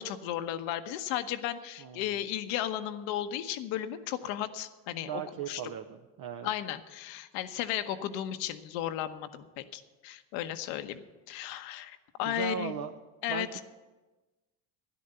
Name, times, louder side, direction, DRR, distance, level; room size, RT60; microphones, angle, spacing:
voice 1, 0.0-5.2 5.5-5.6 6.4-12.7 13.2-13.6, left 11 dB, 75° left, 10 dB, 1.1 m, -35 dB
voice 2, 1.8-2.2 5.0-6.5 12.2-12.9 13.3-13.6, right 8 dB, 45° right, 6 dB, 0.9 m, -37 dB
12.5 x 11.0 x 6.7 m, 1.2 s
supercardioid pair, 85°, 44 cm